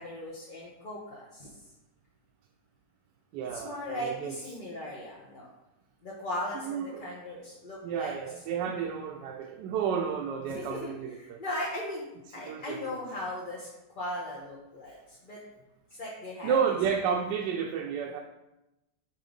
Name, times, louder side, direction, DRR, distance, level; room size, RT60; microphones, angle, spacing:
voice 1, 0.0-1.6 3.5-5.5 6.0-8.1 8.6-8.7 10.5-10.9 11.2-12.1 12.3-13.7 13.9-15.4 15.9-16.8, left 1 dB, 40° left, -5 dB, 0.8 m, -38 dB
voice 2, 3.3-4.4 6.6-7.0 7.8-11.4 12.4-12.8 16.4-18.2, right 7 dB, 85° right, 2 dB, 1.2 m, -31 dB
7.3 x 2.8 x 5.1 m, 0.95 s
omnidirectional pair, 1.9 m